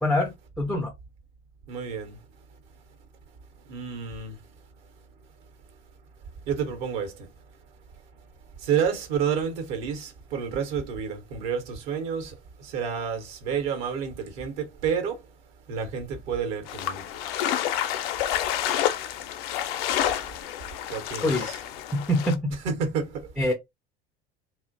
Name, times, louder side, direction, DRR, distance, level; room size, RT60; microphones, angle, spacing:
voice 1, 0.0-0.9 21.2-21.6 21.9-22.5 23.4-23.5, left 1 dB, ahead, 0.4 m, -24 dB
voice 2, 1.7-2.2 3.7-4.4 6.5-7.3 8.6-15.2 15.7-17.0 20.9-21.6 22.6-23.5, right 7 dB, 60° right, 0.9 m, -30 dB
sound 1, 16.7-22.3, left 11 dB, 60° left, 0.5 m, -29 dB
2.4 x 2.1 x 2.5 m
figure-of-eight pair, 70°, 34 cm